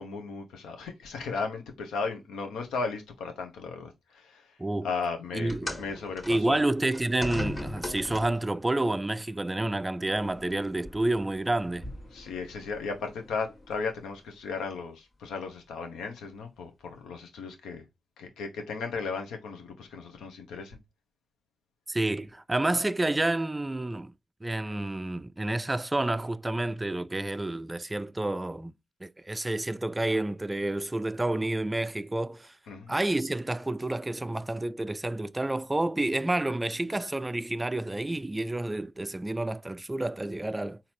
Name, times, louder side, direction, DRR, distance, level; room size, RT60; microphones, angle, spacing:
voice 1, 0.0-4.6 4.8-6.6 12.1-17.8 18.2-20.8 32.7-32.9, left 4 dB, 80° left, 0.8 m, -36 dB
voice 2, 5.3-5.8 6.3-11.9 21.9-24.1 24.4-28.7 29.0-32.5 32.9-40.8, right 2 dB, 20° right, 0.3 m, -29 dB
sound 1, 5.5-8.5 9.5-9.7 10.6-10.7, left 1 dB, 35° left, 1.5 m, -37 dB
sound 2, 10.1-14.7, left 1 dB, 65° left, 1.6 m, -49 dB
4.1 x 2.7 x 3.0 m
supercardioid pair, 40°, 0 cm